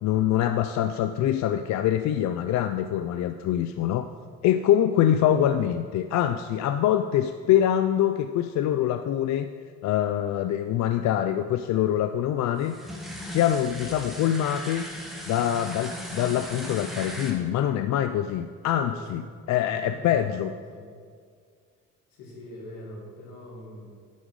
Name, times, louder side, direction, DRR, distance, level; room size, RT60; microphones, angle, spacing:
voice 1, 0.0-4.1 4.4-9.5 9.8-12.8 13.2-14.8 15.3-20.5, left 11 dB, 60° left, 9 dB, 0.4 m, -24 dB
sound 1, 12.6-17.3, equal, ahead, 1.6 m, -38 dB
voice 2, 18.7-19.3 19.6-20.9 22.1-23.9, left 1 dB, 85° left, -2 dB, 2.3 m, -43 dB
10.0 x 5.4 x 4.8 m, 2.1 s
cardioid pair, 100°, 31 cm